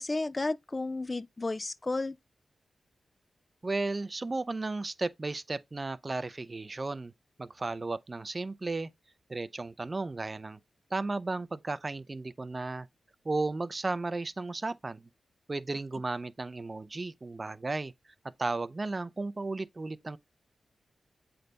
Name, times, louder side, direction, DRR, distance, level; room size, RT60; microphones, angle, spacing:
voice 1, 0.0-2.2, left 2 dB, 35° left, 0.3 m, -32 dB
voice 2, 3.6-7.1 7.4-8.9 9.3-10.6 10.9-12.9 13.2-15.1 15.5-17.9 18.4-20.2, right 3 dB, 40° right, 0.4 m, -34 dB
7.8 x 3.3 x 3.9 m
cardioid pair, 50°, 0 cm